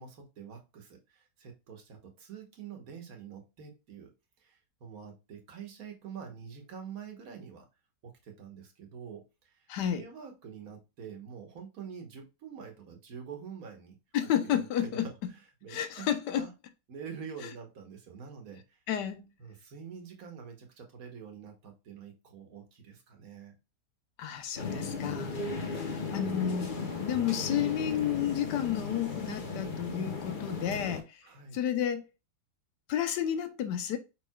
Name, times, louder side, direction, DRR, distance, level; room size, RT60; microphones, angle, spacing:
voice 1, 0.0-4.1 4.4-7.6 8.2-14.0 14.4-16.1 16.3-16.5 16.9-18.8 19.4-23.6 25.5-26.4 30.0-30.3 31.2-31.6, right 7 dB, 55° right, 1.6 m, -46 dB
voice 2, 9.7-10.0 14.1-15.1 15.7-16.5 18.9-19.3 24.2-25.4 25.7-26.7 27.0-31.2 31.5-32.0 32.9-34.0, left 10 dB, 75° left, 1.3 m, -31 dB
sound 1, 24.6-31.0, left 4 dB, 35° left, 0.9 m, -36 dB
5.1 x 4.6 x 2.3 m
omnidirectional pair, 1.9 m